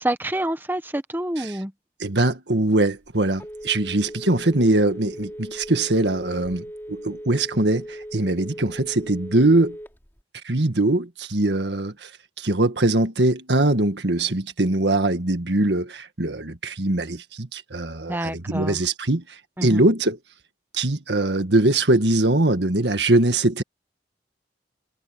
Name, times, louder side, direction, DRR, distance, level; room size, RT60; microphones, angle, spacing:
voice 1, 0.0-1.7 18.1-18.8 19.6-19.8, right 1 dB, 10° right, 1.2 m, -27 dB
voice 2, 2.0-9.8 10.4-12.1 12.4-20.2 20.7-23.6, right 2 dB, 75° right, 1.8 m, -22 dB
Telephone, 2.8-10.2, equal, 15° left, 3.9 m, -38 dB
head